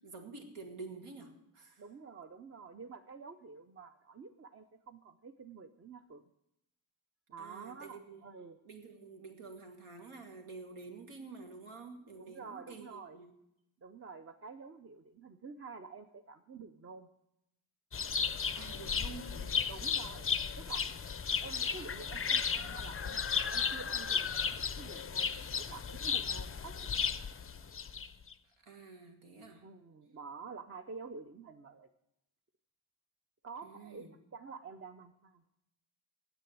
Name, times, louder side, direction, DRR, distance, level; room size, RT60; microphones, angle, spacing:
voice 1, 0.0-1.8 7.4-8.2 8.6-13.3 18.6-19.5 28.6-29.6 33.6-34.1, right 4 dB, 80° right, 3 dB, 2.4 m, -49 dB
voice 2, 1.8-6.2 7.3-8.6 12.1-13.2 13.8-17.1 19.7-20.3 20.6-20.9 21.2-23.2 23.5-27.0 29.6-31.9 33.4-35.4, right 5 dB, 30° right, 7 dB, 0.6 m, -49 dB
sound 1, 17.9-28.3, left 6 dB, 30° left, 0.4 m, -34 dB
9.9 x 7.9 x 9.1 m, 0.84 s
wide cardioid pair, 165°, 50 cm